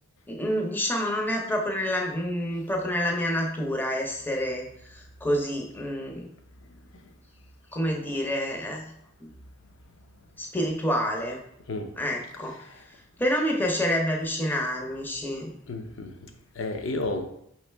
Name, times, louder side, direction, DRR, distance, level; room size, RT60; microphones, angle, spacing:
voice 1, 0.3-6.3 7.7-8.9 9.2-9.3 10.4-11.4 12.0-12.8 13.2-15.5, equal, 10° left, 0 dB, 0.6 m, -28 dB
voice 2, 12.4-12.8 15.7-17.3, left 2 dB, 65° left, 6 dB, 0.6 m, -33 dB
5.1 x 3.1 x 3.3 m, 0.73 s
head